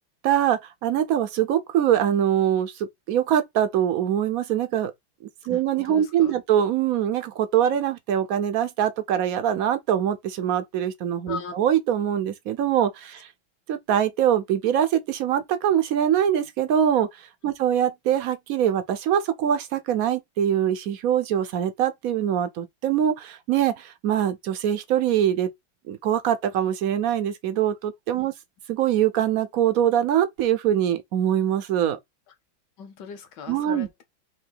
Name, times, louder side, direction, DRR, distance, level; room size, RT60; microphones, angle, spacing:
voice 1, 0.2-4.9 5.5-13.3 13.7-25.5 25.9-28.3 28.7-32.0 33.5-33.9, right 10 dB, 75° right, 0.8 m, -23 dB
voice 2, 5.5-6.4 11.3-11.5 17.5-17.6 28.1-28.3 32.8-34.0, left 6 dB, 65° left, 1.6 m, -39 dB
4.7 x 2.8 x 3.8 m
omnidirectional pair, 2.2 m